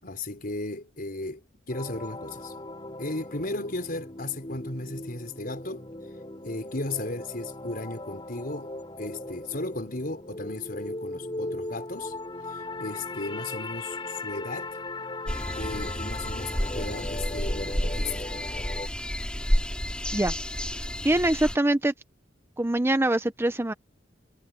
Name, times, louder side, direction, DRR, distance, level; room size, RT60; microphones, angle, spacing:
voice 1, 0.0-2.5 3.0-5.9 6.4-12.1 12.5-14.8 15.5-18.2, left 2 dB, 55° left, 5.3 m, -35 dB
sound 1, 1.7-18.9, left 2 dB, 25° left, 5.5 m, -38 dB
sound 2, 15.3-21.6, equal, 5° left, 3.2 m, -30 dB
voice 2, 21.0-21.9 22.6-23.7, right 1 dB, 15° right, 0.6 m, -23 dB
head